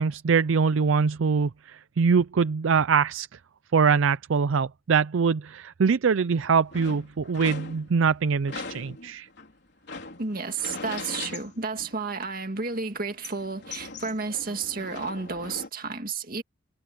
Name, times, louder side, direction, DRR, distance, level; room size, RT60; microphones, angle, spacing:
voice 1, 0.0-3.3 3.7-9.3, right 5 dB, 75° right, 0.5 m, -23 dB
sound 1, 6.3-8.1 8.5-12.3 12.6-15.7, left 3 dB, 55° left, 4.1 m, -40 dB
voice 2, 10.2-16.4, right 4 dB, 45° right, 2.0 m, -32 dB
head